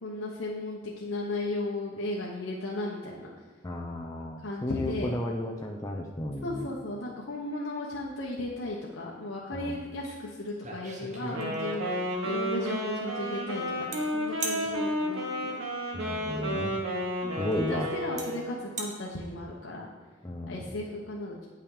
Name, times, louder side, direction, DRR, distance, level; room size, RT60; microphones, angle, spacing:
voice 1, 0.0-3.3 4.4-5.1 6.4-15.6 17.2-19.9 20.5-21.5, left 2 dB, 75° left, -3 dB, 1.1 m, -35 dB
voice 2, 3.6-6.7 9.5-9.8 15.9-16.7 17.4-17.9 20.2-20.6, left 1 dB, 15° left, 0 dB, 0.6 m, -33 dB
sound 1, 10.0-10.2 10.5-11.9 13.9-14.0 14.4-14.6 16.5-16.6 17.5-17.6 18.2-18.3 18.6-18.9, right 3 dB, 40° right, 1.3 m, -36 dB
Wind instrument woodwind instrument, 11.3-18.5, equal, 80° right, 2.0 m, -32 dB
8.8 x 5.9 x 4.9 m, 1.5 s
head